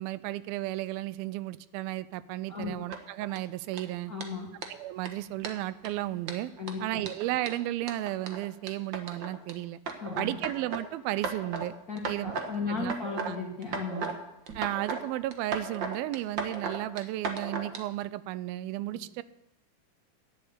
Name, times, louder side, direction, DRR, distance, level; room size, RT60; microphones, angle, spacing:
voice 1, 0.0-4.1 4.7-6.5 6.8-9.8 10.2-11.7 12.0-12.3 12.7-12.9 13.2-13.4 14.6-19.2, right 16 dB, 90° right, 16 dB, 2.5 m, -33 dB
sound 1, 2.9-3.4 3.7-3.8 4.2-4.3 4.6-4.7 5.0-5.1 5.4-5.9 6.2-9.5 9.9-10.8 11.2-11.7 12.0-12.5 12.8-13.3 13.6-14.2 14.5-15.0 15.3-17.8, right 4 dB, 75° right, 1.0 m, -35 dB
voice 2, 4.1-4.5 6.6-7.0 10.0-10.4 11.9-14.1 18.9-19.0, left 4 dB, 35° left, -1 dB, 1.7 m, -35 dB
11.0 x 9.9 x 8.2 m, 0.90 s
omnidirectional pair, 4.2 m